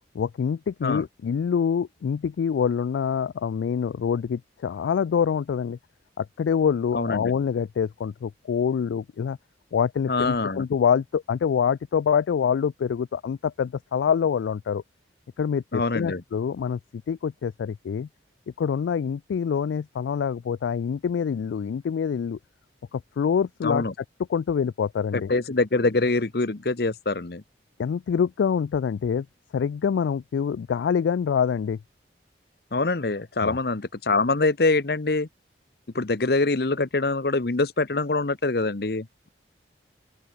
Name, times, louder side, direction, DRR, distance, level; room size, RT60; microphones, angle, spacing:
voice 1, 0.1-5.8 6.2-9.4 9.7-14.8 15.4-16.8 17.1-18.1 18.6-22.4 22.9-23.8 24.3-25.3 27.8-29.3 29.5-31.8 33.4-33.6, left 7 dB, 80° left, 0.3 m, -25 dB
voice 2, 6.9-7.3 10.1-10.6 15.7-16.2 23.6-23.9 25.1-27.4 32.7-35.3 35.9-39.3, left 3 dB, 55° left, 0.9 m, -24 dB
open air
head